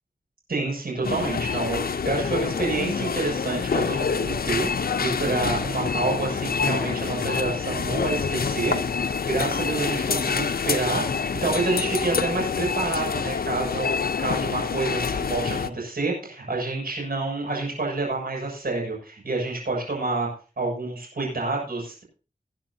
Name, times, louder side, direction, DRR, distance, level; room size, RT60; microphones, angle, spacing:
voice 1, 0.5-20.3 20.6-22.0, right 3 dB, 80° right, -1 dB, 7.0 m, -28 dB
sound 1, 1.0-15.7, left 6 dB, 85° left, 0.7 m, -27 dB
21.0 x 10.5 x 2.8 m, 0.35 s
wide cardioid pair, 55°, 15 cm